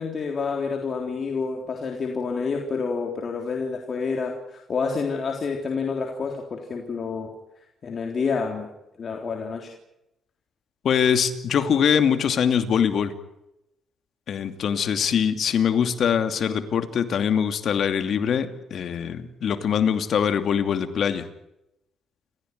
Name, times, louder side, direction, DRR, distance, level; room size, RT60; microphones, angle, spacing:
voice 1, 0.0-7.3 7.8-8.7 9.0-9.7, left 5 dB, 45° left, 2 dB, 3.7 m, -28 dB
voice 2, 10.8-13.1 14.3-21.3, left 7 dB, 60° left, 8 dB, 2.7 m, -23 dB
29.5 x 15.5 x 9.5 m, 0.87 s
cardioid pair, 90°, 0 cm